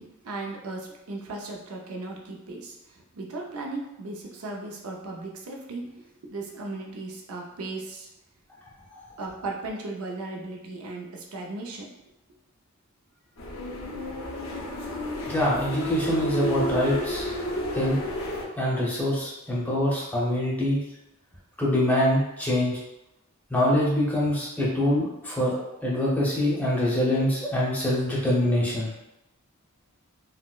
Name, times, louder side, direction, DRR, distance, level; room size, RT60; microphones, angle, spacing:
voice 1, 0.0-5.9 6.2-8.1 9.2-11.9, right 2 dB, 80° right, 0 dB, 0.5 m, -36 dB
sound 1, 13.4-18.5, equal, 65° left, 0.5 m, -31 dB
voice 2, 15.3-17.3 17.7-18.0 18.6-20.8 21.6-22.8 23.5-28.9, left 1 dB, 10° left, -6 dB, 0.7 m, -24 dB
4.0 x 2.0 x 2.3 m, 0.92 s
head